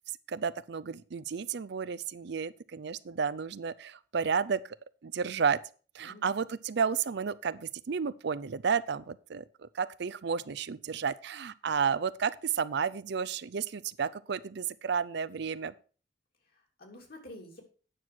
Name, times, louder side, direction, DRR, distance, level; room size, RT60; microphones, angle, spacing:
voice 1, 0.3-4.8 5.0-5.6 5.9-9.4 9.7-15.7, right 6 dB, 65° right, 0.5 m, -32 dB
voice 2, 6.0-6.5 16.5-17.6, left 1 dB, 55° left, 3.1 m, -49 dB
9.3 x 6.4 x 6.0 m
head